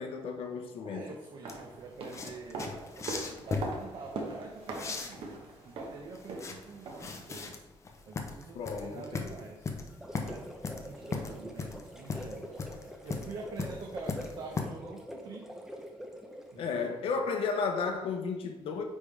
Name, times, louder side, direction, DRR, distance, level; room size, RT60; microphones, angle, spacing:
voice 1, 0.0-1.0 8.5-9.3 16.6-18.8, left 5 dB, 80° left, 0.8 m, -33 dB
voice 2, 0.8-7.6 8.1-9.7 10.2-12.6 13.0-15.5 16.5-17.0, right 4 dB, 55° right, 0.8 m, -46 dB
sound 1, 1.2-7.2 7.5-7.6, right 3 dB, 75° right, 1.1 m, -41 dB
sound 2, 1.5-14.6, left 4 dB, 30° left, 0.7 m, -38 dB
sound 3, 9.8-16.6, equal, 5° right, 0.7 m, -45 dB
9.6 x 3.6 x 3.3 m
cardioid pair, 155°, 9 cm